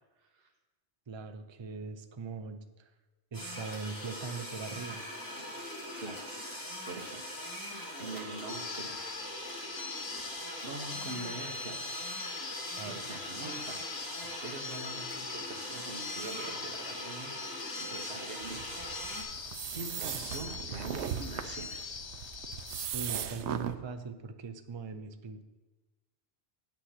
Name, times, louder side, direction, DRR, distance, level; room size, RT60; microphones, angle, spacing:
voice 1, 1.1-2.6 3.3-5.0 12.8-13.1 22.9-25.4, right 4 dB, 35° right, 8 dB, 0.5 m, -40 dB
sound 1, 3.3-19.2, equal, 15° left, 2.4 m, -41 dB
voice 2, 5.4-6.3 6.9-7.3 7.7-9.0 9.4-9.8 10.6-12.0 12.8-14.0 14.4-21.8, right 2 dB, 60° right, 0 dB, 1.3 m, -44 dB
sound 2, 8.5-22.9, left 5 dB, 50° left, 0.3 m, -43 dB
sound 3, 18.4-23.8, right 9 dB, 80° right, 0.9 m, -38 dB
9.2 x 7.7 x 5.7 m, 1.2 s
omnidirectional pair, 1.1 m